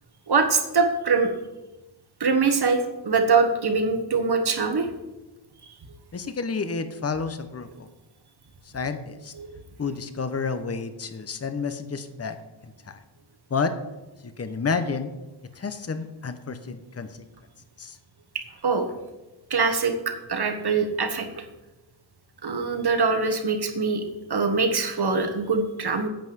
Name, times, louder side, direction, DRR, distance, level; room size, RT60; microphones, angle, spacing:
voice 1, 0.3-1.3 2.2-4.9 9.4-9.5 18.6-18.9 19.5-21.3 22.4-24.0 24.3-26.1, right 4 dB, 50° right, 6 dB, 1.5 m, -23 dB
voice 2, 6.1-7.9 8.7-9.3 9.8-12.4 12.9-13.0 13.5-13.7 14.4-15.1 15.6-17.1 17.8-18.0, left 5 dB, 30° left, 10 dB, 0.9 m, -30 dB
9.0 x 5.5 x 7.9 m, 1.1 s
cardioid pair, 70°, 48 cm